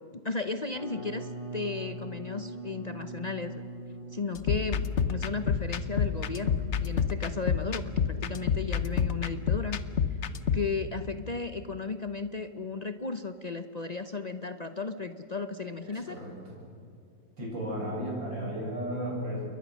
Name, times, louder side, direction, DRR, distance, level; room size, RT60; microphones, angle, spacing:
voice 1, 0.1-3.6 4.1-9.8 10.5-16.2, left 4 dB, 70° left, 9 dB, 0.4 m, -35 dB
sound 1, 0.7-11.7, right 2 dB, 30° left, 2.8 m, -44 dB
sound 2, 4.4-10.7, left 7 dB, 50° left, 1.0 m, -29 dB
voice 2, 15.8-16.6 17.4-19.4, equal, 75° right, -3 dB, 8.3 m, -34 dB
29.0 x 22.5 x 6.4 m, 2.5 s
omnidirectional pair, 2.1 m